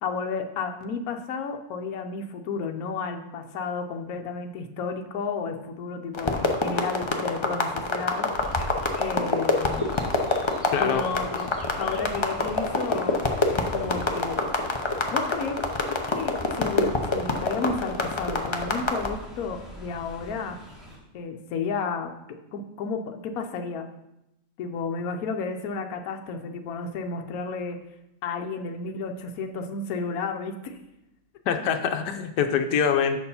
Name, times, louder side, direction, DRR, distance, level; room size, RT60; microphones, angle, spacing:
voice 1, 0.0-8.6 9.0-9.9 10.8-14.4 15.1-15.6 15.9-20.6 21.1-23.9 24.6-27.8 28.2-30.8, left 5 dB, 65° left, 4 dB, 1.2 m, -32 dB
sound 1, 6.1-19.1, left 3 dB, 40° left, 0.4 m, -26 dB
Chirp tweet, 8.3-21.0, left 1 dB, ahead, 2.7 m, -42 dB
voice 2, 10.7-11.0 31.5-33.2, left 7 dB, 85° left, 6 dB, 1.3 m, -24 dB
6.8 x 6.8 x 5.6 m, 0.89 s
omnidirectional pair, 1.8 m